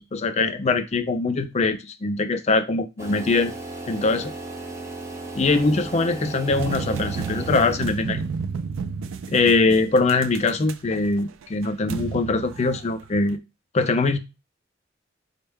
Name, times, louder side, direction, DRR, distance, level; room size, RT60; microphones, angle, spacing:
voice 1, 0.0-3.5 3.9-4.3 5.3-8.3 9.3-13.4 13.7-14.2, left 3 dB, 35° left, 8 dB, 0.4 m, -22 dB
sound 1, 3.0-8.1, right 2 dB, 15° right, 0.6 m, -36 dB
sound 2, 6.5-13.4, right 5 dB, 85° right, 0.3 m, -32 dB
4.2 x 2.1 x 3.4 m, 0.26 s
head